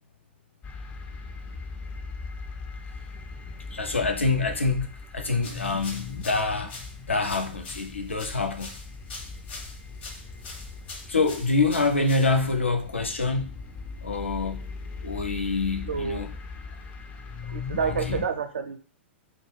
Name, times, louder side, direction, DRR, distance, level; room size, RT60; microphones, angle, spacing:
sound 1, 0.6-18.3, left 4 dB, 25° left, 0.4 m, -39 dB
voice 1, 3.7-6.7 7.1-8.7 11.1-13.5 14.0-14.6 15.0-16.3 18.1-18.2, left 3 dB, 90° left, 5 dB, 0.5 m, -26 dB
sound 2, 5.4-12.6, left 3 dB, 60° left, 0.8 m, -44 dB
voice 2, 15.8-16.2 17.4-18.8, right 6 dB, 70° right, 6 dB, 0.5 m, -29 dB
2.3 x 2.0 x 3.1 m, 0.37 s
figure-of-eight pair, 105°, 6 cm